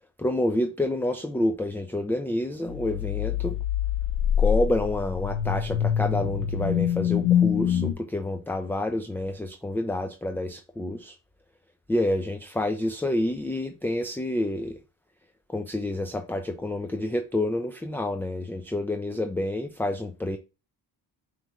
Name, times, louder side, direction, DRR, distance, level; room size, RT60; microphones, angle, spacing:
voice 1, 0.2-3.6 4.4-11.2 11.9-14.8 15.5-20.4, left 1 dB, 5° left, 0.4 m, -28 dB
sound 1, 2.7-7.9, left 9 dB, 90° left, 0.8 m, -25 dB
5.2 x 3.2 x 2.4 m
supercardioid pair, 65°, 46 cm